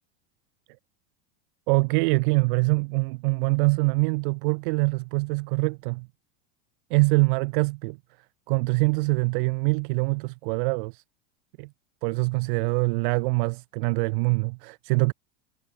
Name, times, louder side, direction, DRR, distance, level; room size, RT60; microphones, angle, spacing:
voice 1, 1.7-6.1 6.9-8.0 8.5-11.0 11.6-11.7 12.0-15.1, right 29 dB, 45° right, 5.3 m, -24 dB
supercardioid pair, 175°, 34 cm